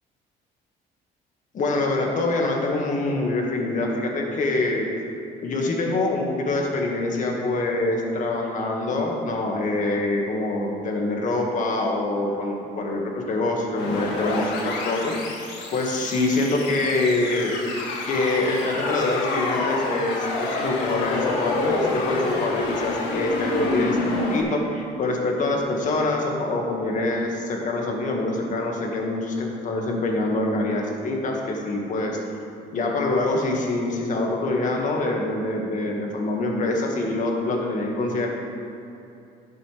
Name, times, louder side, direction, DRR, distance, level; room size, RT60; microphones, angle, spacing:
voice 1, 1.5-4.9 5.4-15.1 15.7-17.5 18.0-32.2 32.7-38.3, left 2 dB, 50° left, 0 dB, 1.8 m, -25 dB
sound 1, 13.8-24.4, left 2 dB, 90° left, 1.6 m, -28 dB
12.5 x 9.0 x 3.4 m, 2.7 s
cardioid pair, 110°, 17 cm